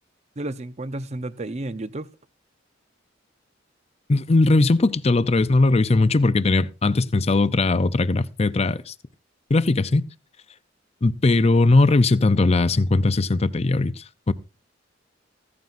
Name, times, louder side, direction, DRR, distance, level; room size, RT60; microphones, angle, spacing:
voice 1, 0.4-2.1, right 2 dB, 35° right, 0.7 m, -31 dB
voice 2, 4.1-8.9 9.5-10.0 11.0-14.3, left 2 dB, 30° left, 0.5 m, -19 dB
15.5 x 14.5 x 2.6 m
head